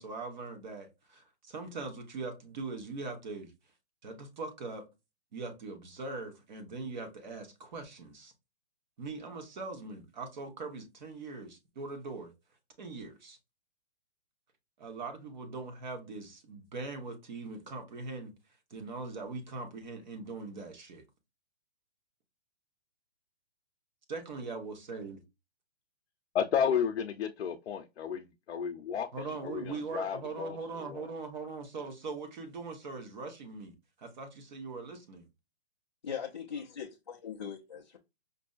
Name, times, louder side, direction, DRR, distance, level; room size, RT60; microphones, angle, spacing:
voice 1, 0.0-3.5 4.0-4.8 5.3-8.3 9.0-12.3 12.8-13.4 14.8-18.3 18.7-21.0 24.1-25.2 29.1-35.3, right 3 dB, 40° right, 1.0 m, -41 dB
voice 2, 26.3-31.1, left 8 dB, 75° left, 0.6 m, -33 dB
voice 3, 36.0-38.0, left 7 dB, 30° left, 0.4 m, -40 dB
5.3 x 2.5 x 2.3 m
hypercardioid pair, 160°, 33 cm